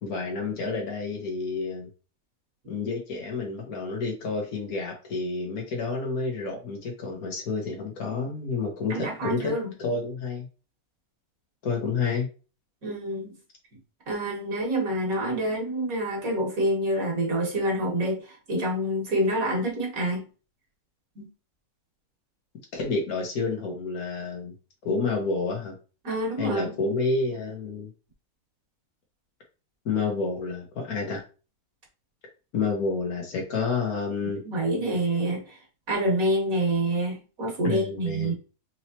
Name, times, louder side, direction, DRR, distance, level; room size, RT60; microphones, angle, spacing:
voice 1, 0.0-1.9 2.7-9.5 9.8-10.5 11.6-12.3 22.7-24.5 24.8-25.7 26.4-27.9 29.8-31.2 32.5-34.4 37.6-38.3, left 4 dB, 75° left, 2 dB, 1.7 m, -29 dB
voice 2, 8.9-9.7 12.8-13.4 14.1-20.3 21.2-21.3 26.0-26.7 34.4-35.6 35.9-38.3, right 1 dB, 65° right, 0 dB, 1.9 m, -27 dB
4.6 x 3.0 x 2.9 m, 0.34 s
omnidirectional pair, 1.6 m